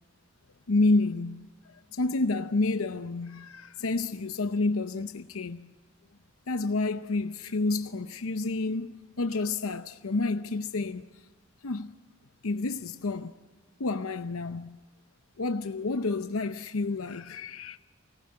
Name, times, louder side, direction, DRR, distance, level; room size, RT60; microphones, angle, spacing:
voice 1, 0.7-1.5 1.9-5.7 6.5-11.0 11.6-11.9 12.4-13.3 13.8-14.8 15.4-17.8, left 3 dB, 85° left, 0.7 m, -29 dB
25.5 x 19.0 x 8.6 m
head